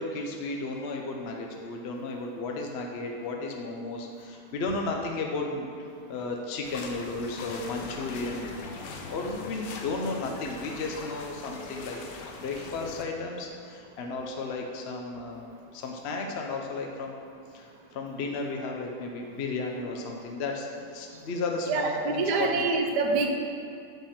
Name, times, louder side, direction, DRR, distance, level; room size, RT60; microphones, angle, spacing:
voice 1, 0.0-5.7 6.1-8.6 9.1-12.0 12.4-17.2 17.5-20.7 20.9-22.6, left 3 dB, 60° left, 1 dB, 0.6 m, -34 dB
sound 1, 6.6-13.0, left 3 dB, 85° left, 1.3 m, -41 dB
voice 2, 21.7-23.3, right 4 dB, 80° right, 3 dB, 1.3 m, -26 dB
7.4 x 5.7 x 4.3 m, 2.4 s
omnidirectional pair, 1.8 m